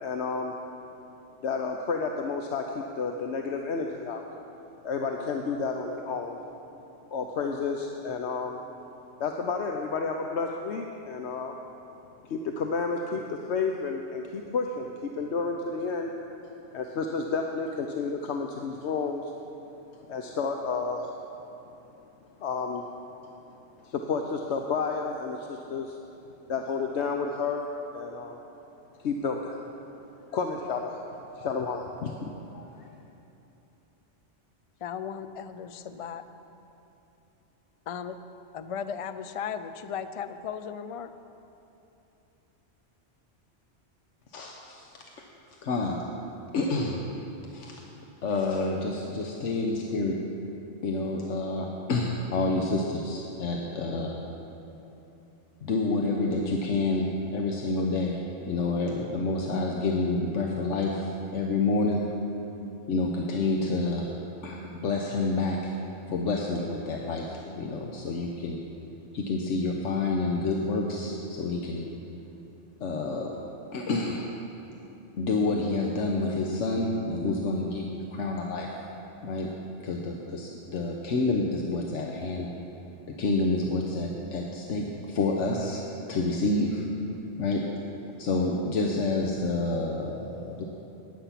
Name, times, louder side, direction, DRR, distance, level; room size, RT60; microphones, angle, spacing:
voice 1, 0.0-0.5 1.4-4.2 4.8-6.4 7.1-8.6 9.2-11.6 12.3-16.1 16.7-19.3 20.1-21.1 22.4-22.8 23.8-26.0 26.5-28.4 29.0-29.6 30.3-32.9, left 4 dB, 70° left, 3 dB, 1.0 m, -31 dB
voice 2, 34.8-36.2 37.9-38.2 38.5-41.1, left 7 dB, 50° left, 11 dB, 0.4 m, -36 dB
voice 3, 44.3-44.9 45.6-46.0 46.5-47.0 47.5-47.8 48.2-50.2 50.8-54.1 55.6-62.1 62.9-64.1 64.4-65.7 66.1-68.6 69.1-71.9 72.8-73.4 73.7-74.3 75.2-78.7 79.2-79.5 79.8-82.5 83.1-85.8 86.1-86.8 87.4-87.7 88.2-90.6, left 3 dB, 90° left, 0 dB, 1.3 m, -28 dB
15.0 x 10.0 x 5.8 m, 3.0 s
omnidirectional pair, 1.2 m